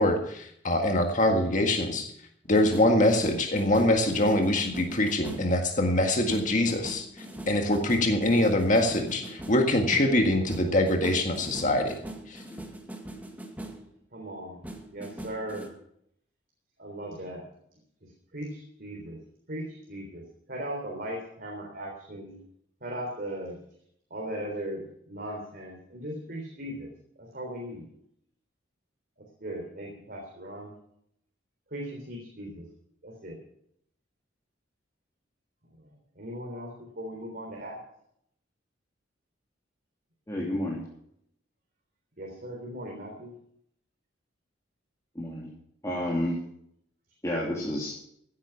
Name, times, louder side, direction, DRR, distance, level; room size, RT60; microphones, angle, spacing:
voice 1, 0.0-2.1 2.5-7.0 7.5-12.0 12.3-12.4, left 1 dB, 40° left, 3 dB, 1.8 m, -24 dB
sound 1, 2.5-5.6 6.3-13.9 14.6-15.7, right 1 dB, 10° right, 1.8 m, -42 dB
voice 2, 14.1-14.6 14.9-15.7 16.8-17.5 18.0-19.2 19.5-22.4 22.8-23.6 24.1-26.9 27.2-27.9 29.2-30.7 31.7-32.7 33.0-33.4 35.7-37.8 42.2-43.3, right 1 dB, 50° right, 0 dB, 3.6 m, -38 dB
voice 3, 40.3-40.8 45.1-45.5 45.8-46.3 47.2-47.9, left 1 dB, 15° left, -4 dB, 3.1 m, -30 dB
16.5 x 9.7 x 5.8 m, 0.70 s
head